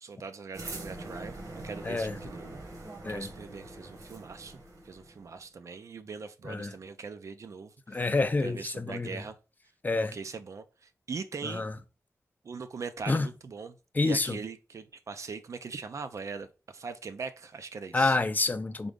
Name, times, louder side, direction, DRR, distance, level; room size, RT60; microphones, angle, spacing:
voice 1, 0.0-2.6 3.1-8.0 8.4-9.4 10.0-11.6 12.4-13.8 14.0-18.2, right 5 dB, 65° right, 0.6 m, -41 dB
sound 1, 0.5-5.4, right 2 dB, 80° right, 1.7 m, -43 dB
voice 2, 1.8-2.2 3.0-3.3 6.4-6.7 7.9-9.2 9.8-10.2 11.4-11.7 13.1-13.3 13.9-14.4 17.9-18.9, left 3 dB, 30° left, 0.5 m, -28 dB
3.9 x 3.7 x 3.6 m
wide cardioid pair, 85°, 6 cm